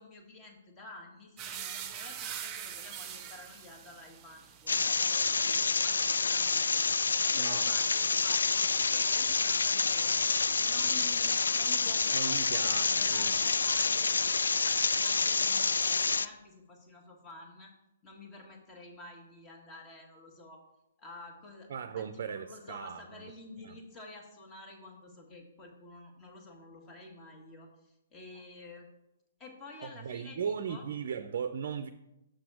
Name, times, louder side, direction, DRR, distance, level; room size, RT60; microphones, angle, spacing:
voice 1, 0.0-10.2 10.6-14.7 15.0-17.7 18.0-20.6 21.0-21.7 22.0-28.9 29.4-30.8, left 2 dB, 20° left, 2 dB, 1.7 m, -50 dB
sound 1, 1.4-9.3 9.6-10.8, right 9 dB, 25° right, 0.7 m, -45 dB
sound 2, 4.7-16.3, left 4 dB, 80° left, 0.3 m, -28 dB
voice 2, 7.4-7.7 12.1-13.3 21.7-23.3 23.6-23.8 29.8-31.9, right 7 dB, 55° right, 9 dB, 0.4 m, -37 dB
6.5 x 6.0 x 4.7 m, 0.89 s
hypercardioid pair, 130°, 0 cm